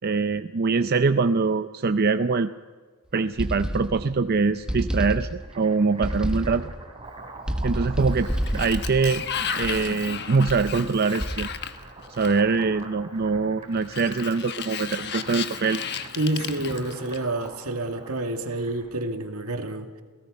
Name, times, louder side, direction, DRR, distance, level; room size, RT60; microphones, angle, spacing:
voice 1, 0.0-2.5 3.1-6.7 7.6-9.2 9.6-11.5 12.2-15.8, right 4 dB, 45° right, 9 dB, 0.5 m, -23 dB
sound 1, 3.4-4.2 4.7-5.6 6.0-6.8 7.5-10.0 10.5-10.8 11.2-11.7, equal, 5° right, 1.2 m, -29 dB
sound 2, 5.3-19.0, right 3 dB, 25° right, 3.7 m, -45 dB
Sliding door, 8.0-12.6 13.8-17.5, left 7 dB, 50° left, 1.2 m, -34 dB
voice 2, 16.2-20.0, right 2 dB, 75° right, 5 dB, 2.3 m, -28 dB
29.5 x 17.5 x 5.4 m, 1.5 s
head